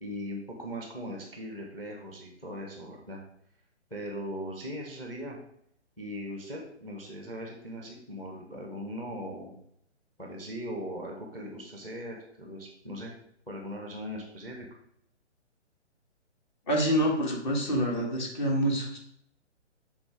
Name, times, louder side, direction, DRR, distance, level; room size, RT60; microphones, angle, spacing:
voice 1, 0.0-3.2 3.9-5.4 6.0-9.6 10.2-13.1 13.5-14.7, equal, 5° left, 0 dB, 0.6 m, -39 dB
voice 2, 16.7-19.0, equal, 40° left, 0 dB, 1.8 m, -27 dB
7.2 x 3.7 x 4.9 m, 0.71 s
figure-of-eight pair, 130°, 36 cm